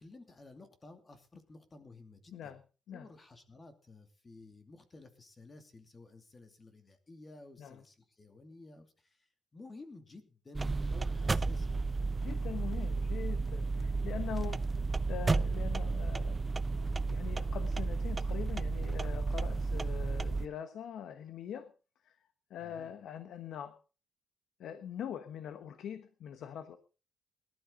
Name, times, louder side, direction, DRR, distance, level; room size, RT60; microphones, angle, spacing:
voice 1, 0.0-2.6 2.9-11.8 22.6-22.9, left 3 dB, 25° left, 7 dB, 2.6 m, -54 dB
sound 1, 10.5-20.5, right 3 dB, 20° right, 0.6 m, -32 dB
voice 2, 12.1-14.8 15.1-21.7 22.0-22.1 22.5-23.8 24.6-26.8, left 9 dB, 70° left, 10 dB, 1.2 m, -43 dB
19.5 x 12.0 x 3.9 m, 0.35 s
cardioid pair, 140°, 0 cm